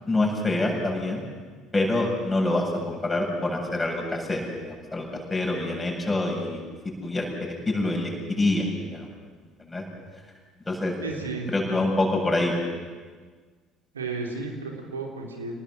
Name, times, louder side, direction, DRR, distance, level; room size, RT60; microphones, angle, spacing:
voice 1, 0.1-1.2 1.7-6.6 7.0-9.1 9.7-9.8 10.6-10.9 11.5-12.5, left 2 dB, 15° left, 0 dB, 7.7 m, -26 dB
voice 2, 11.0-11.5 13.9-15.5, right 4 dB, 80° right, 1 dB, 3.4 m, -33 dB
28.0 x 19.0 x 7.7 m, 1.5 s
figure-of-eight pair, 55°, 0 cm